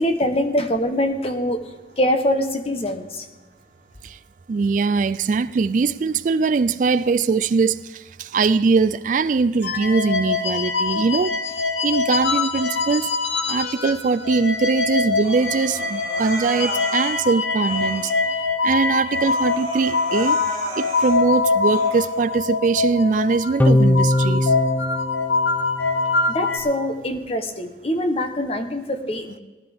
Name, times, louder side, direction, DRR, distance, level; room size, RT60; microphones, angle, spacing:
voice 1, 0.0-3.3 26.3-29.4, left 1 dB, 35° left, 1.0 m, -24 dB
voice 2, 4.5-11.3 11.8-13.1 13.5-18.1 18.6-20.4 20.8-24.5, right 4 dB, 45° right, 0.3 m, -21 dB
sound 1, 9.6-14.0 14.2-26.6, left 4 dB, 85° left, 1.3 m, -24 dB
Human voice, 15.2-17.2 17.6-18.3 18.7-18.8 19.1-21.2 21.6-22.2, right 2 dB, 25° right, 3.4 m, -34 dB
sound 2, 23.6-26.2, left 1 dB, 10° left, 0.5 m, -20 dB
18.5 x 11.5 x 3.5 m
head